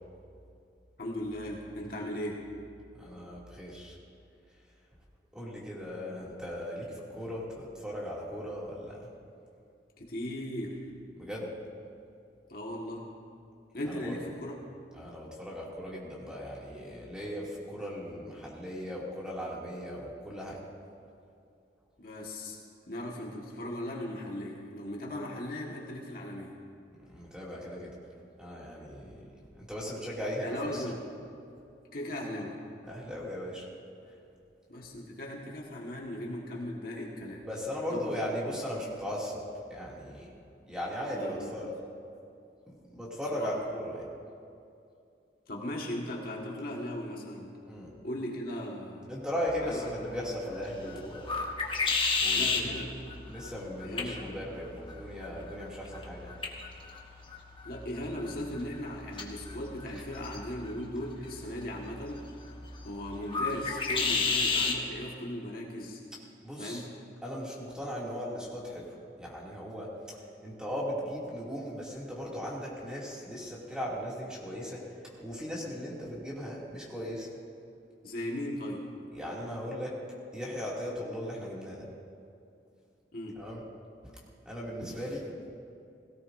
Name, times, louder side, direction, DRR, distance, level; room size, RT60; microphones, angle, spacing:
voice 1, 1.0-2.4 10.0-10.9 12.5-13.1 13.7-14.6 22.0-22.6 22.9-26.5 30.4-31.1 31.9-32.6 34.7-37.5 37.9-38.1 41.1-41.7 43.3-43.6 45.5-47.6 48.0-49.1 49.6-50.2 52.3-53.0 53.8-54.4 57.6-62.3 62.8-66.0 66.6-66.9 78.0-78.9 83.1-83.4, left 1 dB, 55° left, -2 dB, 1.7 m, -38 dB
voice 2, 3.0-4.0 5.3-9.0 11.2-11.5 13.9-14.1 14.9-20.6 27.1-27.9 28.4-29.3 29.5-30.8 32.9-33.6 37.4-39.4 39.7-40.3 40.7-41.7 42.7-44.1 47.7-47.9 49.1-51.3 51.8-52.7 53.3-56.3 66.4-66.8 67.2-68.9 69.2-70.2 70.4-74.8 75.2-77.3 79.1-80.0 80.3-81.9 83.4-83.6 84.4-85.2, equal, 5° right, -6 dB, 2.6 m, -37 dB
sound 1, 49.5-64.8, left 4 dB, 30° left, 1.3 m, -34 dB
17.5 x 17.0 x 2.7 m, 2.5 s
head